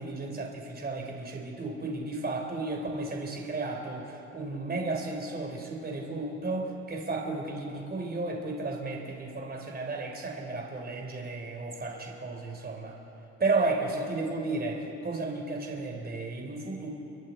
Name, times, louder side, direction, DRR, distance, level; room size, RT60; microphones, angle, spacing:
voice 1, 0.0-13.0 13.4-16.9, right 3 dB, 30° right, 2 dB, 3.6 m, -33 dB
28.5 x 23.0 x 4.4 m, 2.8 s
cardioid pair, 90°, 30 cm